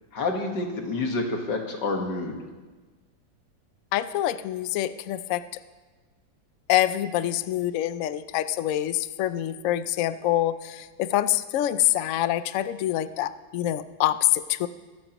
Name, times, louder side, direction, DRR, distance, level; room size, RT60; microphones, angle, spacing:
voice 1, 0.1-2.4, left 3 dB, 65° left, 2 dB, 2.2 m, -28 dB
voice 2, 3.9-5.4 6.7-14.7, left 13 dB, 90° left, 13 dB, 0.7 m, -25 dB
23.0 x 13.0 x 3.0 m, 1.3 s
omnidirectional pair, 2.0 m